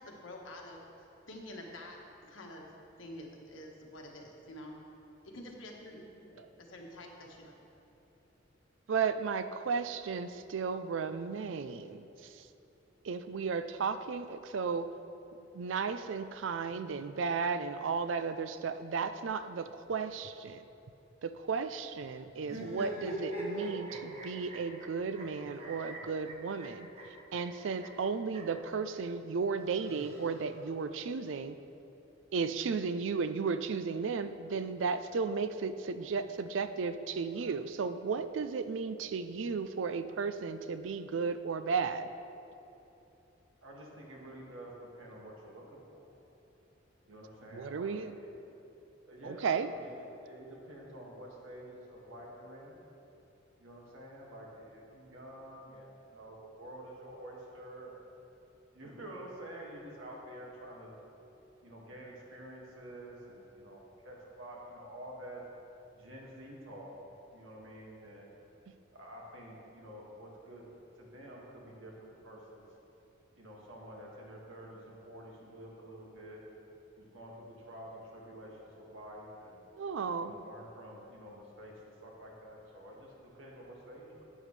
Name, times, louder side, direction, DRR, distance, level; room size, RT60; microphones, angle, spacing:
voice 1, 0.0-2.7 3.0-4.8 5.2-7.6, left 1 dB, 80° left, 0 dB, 1.4 m, -48 dB
voice 2, 8.9-12.1 13.0-14.9 15.5-20.6 21.2-26.9 27.3-31.6 32.3-42.1 47.5-48.1 49.2-49.7 79.8-80.4, right 5 dB, 70° right, 11 dB, 0.4 m, -34 dB
sound 1, 22.4-28.6 29.6-30.7, right 1 dB, 35° right, 1.5 m, -43 dB
voice 3, 43.6-46.1 47.1-48.3 49.1-52.8 53.6-58.0 58.7-60.9 61.6-65.4 65.9-67.0 67.3-68.3 68.9-70.6 71.0-72.7 73.4-76.4 77.0-79.6 80.2-81.7 82.0-84.3, right 1 dB, 85° right, -3 dB, 1.9 m, -49 dB
11.5 x 8.9 x 3.3 m, 2.9 s
head